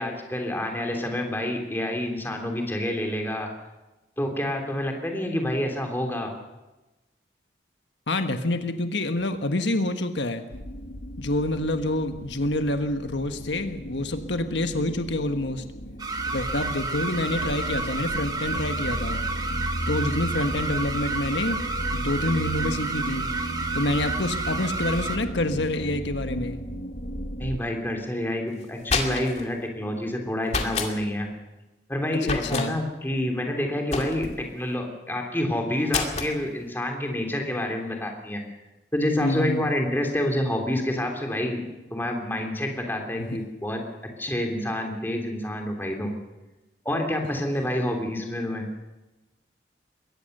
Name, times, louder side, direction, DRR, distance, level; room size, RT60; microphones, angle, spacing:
voice 1, 0.0-3.5 4.2-6.3 27.4-31.3 31.9-34.3 34.5-38.4 38.9-43.8 44.2-46.1 46.8-48.7, left 1 dB, 10° left, 3 dB, 3.2 m, -28 dB
voice 2, 8.1-10.4 11.2-15.6 16.3-19.2 19.9-21.6 21.9-23.3 23.7-26.6 32.1-32.8 39.2-39.7 43.2-43.3, left 1 dB, 80° left, 7 dB, 1.4 m, -27 dB
sound 1, 10.5-27.6, equal, 60° left, 2.0 m, -34 dB
sound 2, 16.0-25.2, right 3 dB, 20° right, 1.6 m, -31 dB
sound 3, 28.6-29.5 30.5-30.9 32.2-32.7 33.9-34.4 35.9-36.4, left 4 dB, 35° left, 2.4 m, -28 dB
22.5 x 18.0 x 6.8 m, 1.1 s
head